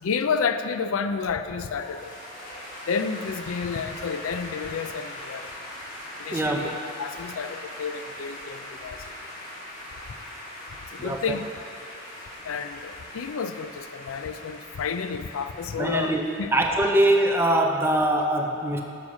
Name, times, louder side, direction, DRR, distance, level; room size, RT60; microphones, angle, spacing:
voice 1, 0.0-2.1 2.9-5.5 6.2-9.1 10.9-11.4 12.4-16.5, left 5 dB, 90° left, 10 dB, 0.4 m, -30 dB
sound 1, 1.6-17.2, left 1 dB, 35° left, 1.8 m, -41 dB
voice 2, 6.3-6.7 11.0-11.4 15.8-16.2 16.5-18.8, right 1 dB, 10° right, 2 dB, 0.6 m, -23 dB
9.7 x 5.7 x 6.3 m, 2.6 s
head